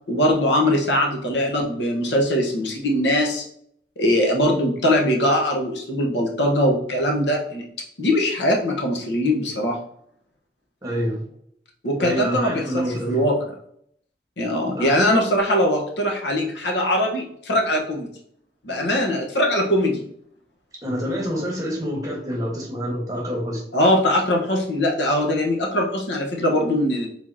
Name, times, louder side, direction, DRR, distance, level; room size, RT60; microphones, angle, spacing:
voice 1, 0.1-3.4 4.0-7.6 8.0-9.8 11.8-12.6 13.1-13.3 14.4-18.1 18.6-20.0 23.7-27.1, left 1 dB, 80° left, 1 dB, 1.2 m, -21 dB
voice 2, 10.8-11.3 12.0-13.2 14.7-14.9 20.8-23.6, equal, 20° right, -1 dB, 1.4 m, -27 dB
4.8 x 3.9 x 2.8 m, 0.68 s
head